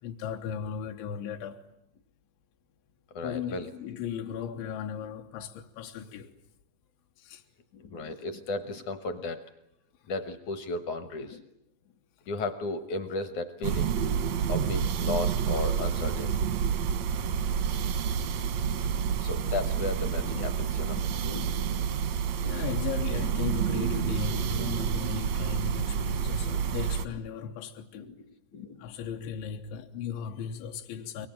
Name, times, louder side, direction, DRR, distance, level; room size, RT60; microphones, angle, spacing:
voice 1, 0.0-1.7 3.2-6.4 7.2-7.4 10.0-10.1 18.2-18.4 22.4-28.1 28.8-31.3, left 7 dB, 85° left, 3.5 m, -36 dB
voice 2, 3.1-3.7 7.7-9.4 10.1-11.4 12.3-13.9 14.5-16.3 19.2-21.8 25.9-26.0 26.4-26.6 27.9-28.2 28.5-29.0, left 3 dB, 70° left, 1.9 m, -35 dB
sound 1, 13.6-27.0, right 7 dB, 80° right, 1.5 m, -29 dB
25.5 x 23.5 x 9.0 m
omnidirectional pair, 5.1 m